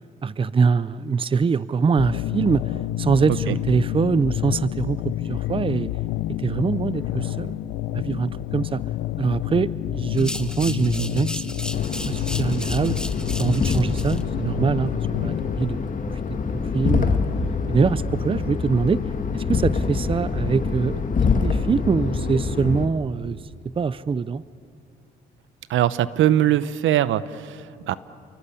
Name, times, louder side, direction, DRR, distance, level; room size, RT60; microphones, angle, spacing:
voice 1, 0.2-2.7 3.0-5.9 6.4-7.6 7.9-8.8 9.2-11.7 12.1-13.0 13.4-15.8 16.5-17.2 17.7-19.0 19.3-21.0 21.3-23.4 23.8-24.4, right 5 dB, 25° right, 18 dB, 0.6 m, -23 dB
sound 1, 2.0-15.5, left 13 dB, 90° left, 0.8 m, -28 dB
sound 2, 10.1-14.2, left 1 dB, 5° left, 1.4 m, -35 dB
sound 3, 11.7-22.9, left 5 dB, 40° left, 2.1 m, -25 dB
voice 2, 25.7-28.0, right 12 dB, 80° right, 16 dB, 0.9 m, -21 dB
30.0 x 23.0 x 8.4 m, 2.5 s
cardioid pair, 90°, 20 cm